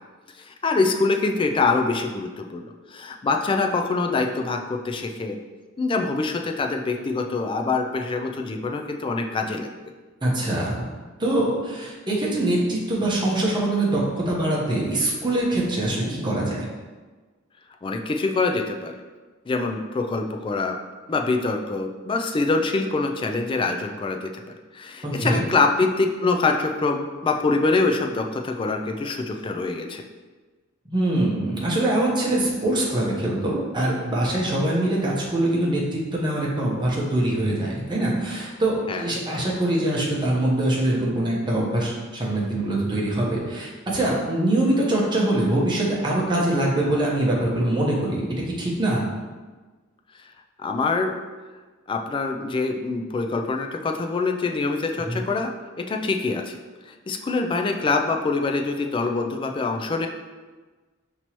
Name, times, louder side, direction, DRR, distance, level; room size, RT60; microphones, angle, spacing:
voice 1, 0.4-5.4 5.8-9.7 17.8-18.9 19.5-20.8 21.1-24.3 24.7-30.0 38.9-39.0 50.2-50.3 50.6-51.2 51.9-56.6 56.9-60.1, left 3 dB, 25° left, 4 dB, 0.3 m, -25 dB
voice 2, 10.2-10.9 11.2-16.7 25.2-25.4 30.8-48.3 48.6-49.0 55.1-55.2, right 1 dB, 25° right, -5 dB, 0.9 m, -23 dB
5.4 x 3.0 x 3.0 m, 1.3 s
head